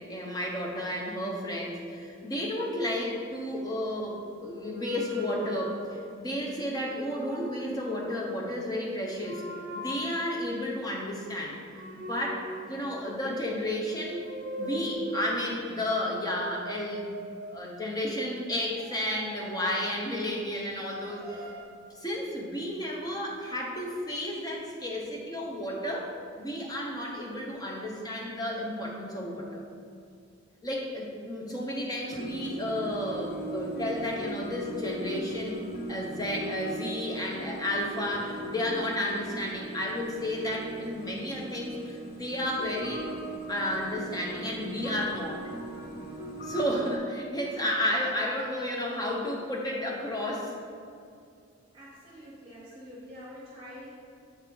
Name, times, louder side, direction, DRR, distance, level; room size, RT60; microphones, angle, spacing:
voice 1, 0.0-9.4 9.7-11.6 11.9-14.2 14.6-17.1 17.5-21.4 22.0-29.6 30.6-35.6 35.9-43.1 43.5-45.5 46.4-50.6, left 1 dB, 20° left, -2 dB, 0.8 m, -32 dB
sound 1, 2.8-3.7 4.2-6.3 6.9-7.8 9.1-10.5 11.7-13.4 13.9-15.6 16.2-17.8 18.7-20.6 21.1-21.6, equal, 50° right, 0.7 m, -42 dB
sound 2, 32.1-47.0, right 1 dB, 45° left, 0.5 m, -39 dB
voice 2, 51.7-53.9, equal, 30° right, -7 dB, 1.1 m, -46 dB
7.3 x 3.1 x 5.2 m, 2.4 s
head